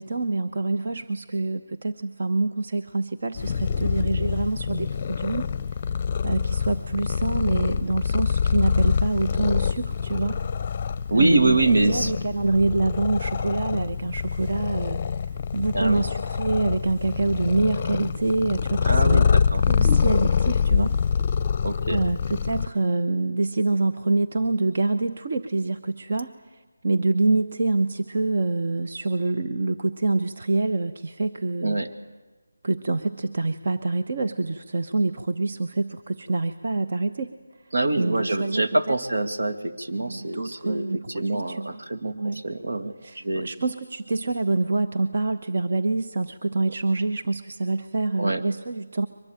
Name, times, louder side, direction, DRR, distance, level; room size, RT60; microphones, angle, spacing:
voice 1, 0.0-5.5 6.2-10.4 11.1-11.6 11.9-15.3 15.5-19.4 19.7-21.0 21.9-31.8 32.6-37.3 38.0-38.6 39.9-41.8 42.1-42.4 43.0-49.1, right 2 dB, 45° right, 8 dB, 1.0 m, -26 dB
Purr, 3.3-22.7, left 6 dB, 20° left, 0.7 m, -25 dB
voice 2, 11.1-12.1 15.7-16.0 18.9-19.6 21.6-22.0 31.6-31.9 37.7-43.5 48.2-48.4, right 2 dB, 70° right, 6 dB, 2.2 m, -25 dB
23.5 x 21.5 x 9.0 m, 1.2 s
figure-of-eight pair, 170°, 0 cm